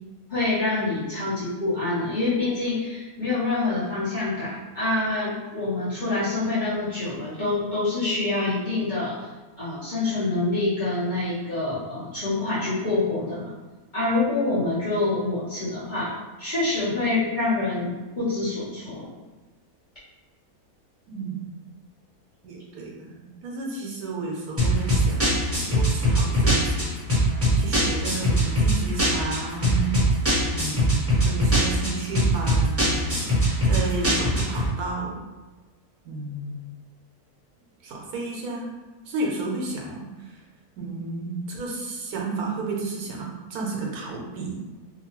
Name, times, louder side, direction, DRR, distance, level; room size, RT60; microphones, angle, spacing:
voice 1, 0.3-9.3 9.6-13.5 13.9-19.1, left 2 dB, 40° left, -11 dB, 0.8 m, -26 dB
voice 2, 21.1-21.5 22.4-25.3 25.7-26.8 27.5-30.0 30.5-32.9 33.6-35.2 36.0-36.7 37.8-38.7 39.1-40.4 40.8-44.6, right 3 dB, 75° right, -2 dB, 1.1 m, -32 dB
sound 1, 24.6-34.7, equal, 15° right, 0.6 m, -22 dB
2.8 x 2.2 x 2.9 m, 1.2 s
omnidirectional pair, 1.6 m